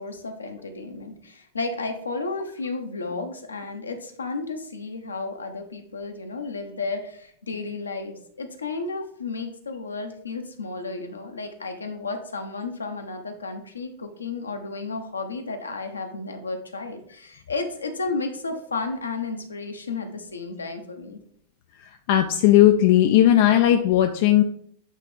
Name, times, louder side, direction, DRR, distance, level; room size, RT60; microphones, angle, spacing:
voice 1, 0.0-21.2, left 3 dB, 75° left, 5 dB, 0.8 m, -33 dB
voice 2, 22.1-24.4, left 12 dB, 50° left, 6 dB, 0.4 m, -17 dB
8.3 x 3.2 x 3.5 m, 0.64 s
figure-of-eight pair, 90°, 0 cm